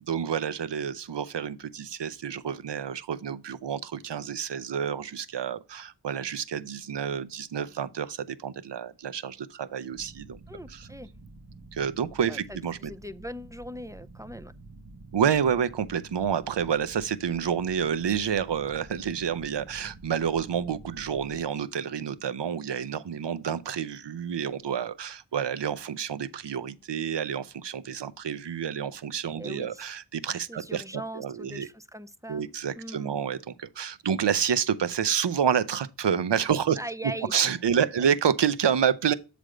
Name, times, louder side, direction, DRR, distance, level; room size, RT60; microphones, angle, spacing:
voice 1, 0.1-10.4 10.7-10.9 11.7-12.9 15.1-31.7 32.3-36.8 37.3-39.1, right 8 dB, 85° right, 0.6 m, -29 dB
sound 1, 9.9-21.4, right 2 dB, 45° right, 1.1 m, -49 dB
voice 2, 10.5-11.1 12.3-14.5 29.4-30.0 30.5-32.5 32.7-33.2 36.8-38.1, equal, 10° right, 0.4 m, -40 dB
7.6 x 3.4 x 4.9 m
wide cardioid pair, 40°, 41 cm